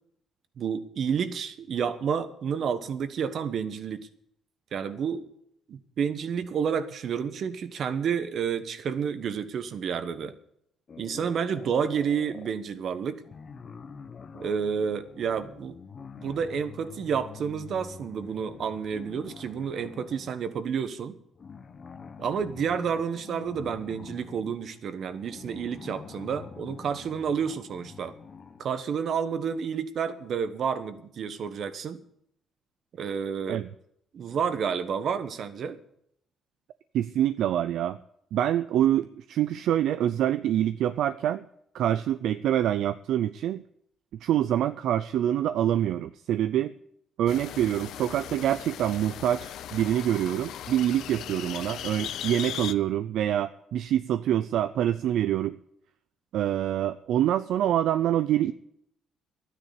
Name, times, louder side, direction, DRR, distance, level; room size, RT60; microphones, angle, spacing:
voice 1, 0.6-4.1 4.7-5.3 5.7-10.4 11.0-13.2 14.3-15.8 16.2-21.1 22.2-28.1 28.6-32.0 33.0-33.6 34.1-35.8, right 7 dB, 60° right, 11 dB, 1.2 m, -30 dB
sound 1, 10.9-12.6 13.2-20.4 21.4-28.8, left 5 dB, 45° left, 1.2 m, -46 dB
voice 2, 36.9-38.0 38.3-41.5 41.7-43.6 44.2-46.7 47.2-55.6 56.3-58.5, right 11 dB, 80° right, 12 dB, 0.5 m, -26 dB
sound 2, 47.3-52.7, left 11 dB, 80° left, 0.6 m, -38 dB
12.0 x 9.8 x 8.3 m, 0.72 s
cardioid pair, 90°, 0 cm